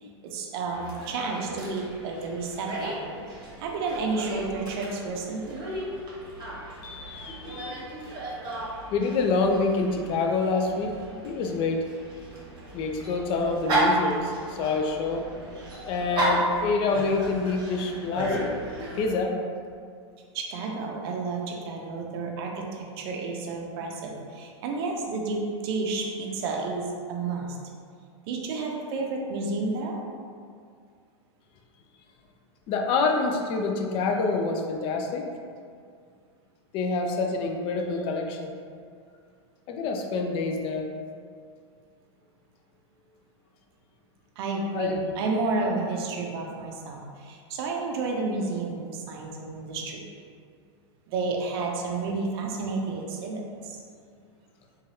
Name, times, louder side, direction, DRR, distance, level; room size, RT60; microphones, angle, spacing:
voice 1, 0.0-3.2 3.6-5.6 20.3-27.6 28.3-30.0 44.4-50.0 51.1-53.8, right 3 dB, 60° right, 0 dB, 0.5 m, -31 dB
Dog, 0.7-19.0, right 1 dB, 30° right, 0.8 m, -33 dB
voice 2, 6.8-7.8 8.9-10.9 11.2-11.8 12.7-15.2 15.9-18.4 18.9-19.4 32.7-35.2 36.7-38.5 39.7-40.9 44.7-45.1, left 3 dB, 35° left, 3 dB, 0.3 m, -27 dB
3.1 x 2.3 x 2.7 m, 2.2 s
hypercardioid pair, 120°, 15 cm